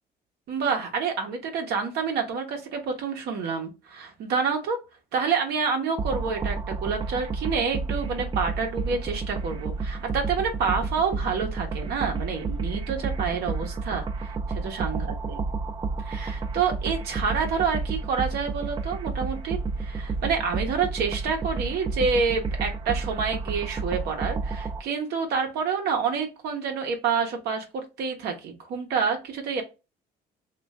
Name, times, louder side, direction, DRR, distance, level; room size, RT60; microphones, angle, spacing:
voice 1, 0.5-4.8 5.1-15.4 16.0-29.6, right 5 dB, 75° right, 3 dB, 0.9 m, -28 dB
sound 1, 6.0-24.8, right 4 dB, 30° right, 0.4 m, -31 dB
3.1 x 2.4 x 3.5 m, 0.28 s
cardioid pair, 110°, 17 cm